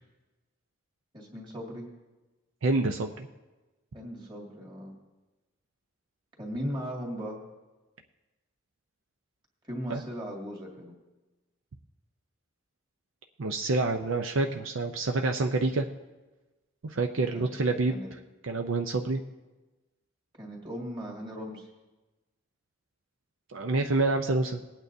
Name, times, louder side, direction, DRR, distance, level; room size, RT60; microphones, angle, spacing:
voice 1, 1.1-1.9 3.9-5.0 6.4-7.4 9.6-11.0 17.2-17.5 17.9-18.1 20.3-21.7, equal, 20° right, -1 dB, 1.9 m, -38 dB
voice 2, 2.6-3.3 9.9-10.0 13.4-15.9 16.8-18.0 18.4-19.2 23.5-24.6, right 3 dB, 70° right, 4 dB, 0.5 m, -27 dB
19.5 x 8.9 x 2.7 m, 1.1 s
head